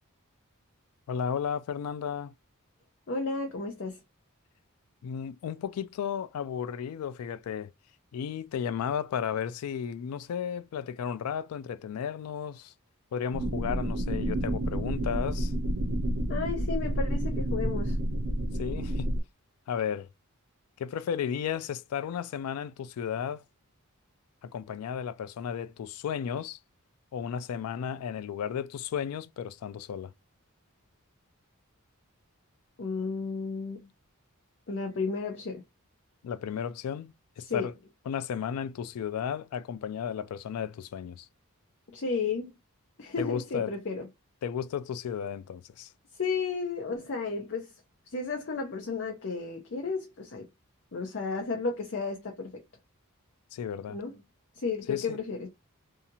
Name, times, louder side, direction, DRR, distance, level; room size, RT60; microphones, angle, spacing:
voice 1, 1.1-2.3 5.0-7.7 8.1-12.7 13.1-15.5 18.5-19.1 19.7-20.1 20.8-23.4 24.4-26.6 27.1-30.1 36.2-37.7 38.1-41.3 43.2-43.7 44.4-45.9 53.5-54.0 54.9-55.2, left 8 dB, 90° left, 0.3 m, -34 dB
voice 2, 3.1-4.0 16.3-18.0 32.8-33.8 34.7-35.6 37.4-37.7 41.9-42.5 43.0-44.1 46.2-47.7 48.1-50.5 50.9-52.5 53.9-54.1 54.6-55.5, left 4 dB, 55° left, 0.6 m, -33 dB
sound 1, 13.3-19.2, right 1 dB, 70° right, 0.5 m, -30 dB
2.8 x 2.4 x 2.7 m
head